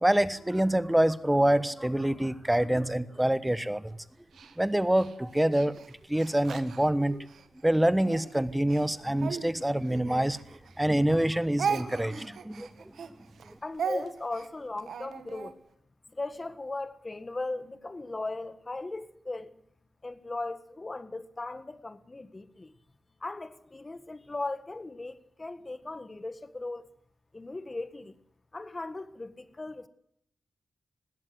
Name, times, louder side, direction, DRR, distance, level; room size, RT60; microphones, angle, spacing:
voice 1, 0.0-4.0 4.6-5.8 6.1-7.3 7.6-10.4 10.8-12.7, right 1 dB, 10° right, 1.2 m, -26 dB
Speech, 4.3-7.5 8.0-10.8 11.1-15.5, right 6 dB, 85° right, 1.9 m, -37 dB
voice 2, 13.6-15.6 16.1-19.6 20.0-22.7 23.2-26.9 27.3-28.2 28.5-29.9, left 2 dB, 25° left, 1.6 m, -38 dB
20.5 x 16.5 x 7.8 m
wide cardioid pair, 100°, 0 cm